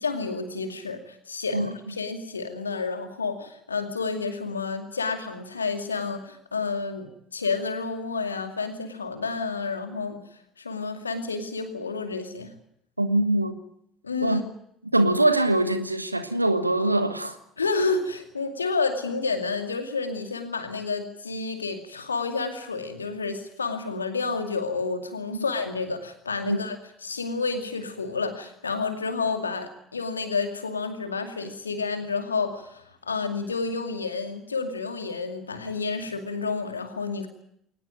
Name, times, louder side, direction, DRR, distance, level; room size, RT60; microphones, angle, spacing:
voice 1, 0.0-10.2 10.6-12.5 14.0-14.4 17.6-26.8 27.0-37.3, left 4 dB, 85° left, 7 dB, 2.4 m, -30 dB
voice 2, 13.0-13.6 14.2-14.4 14.9-17.4 26.5-26.6, right 1 dB, 90° right, 12 dB, 1.2 m, -23 dB
22.0 x 19.5 x 9.2 m, 0.72 s
figure-of-eight pair, 55°, 0 cm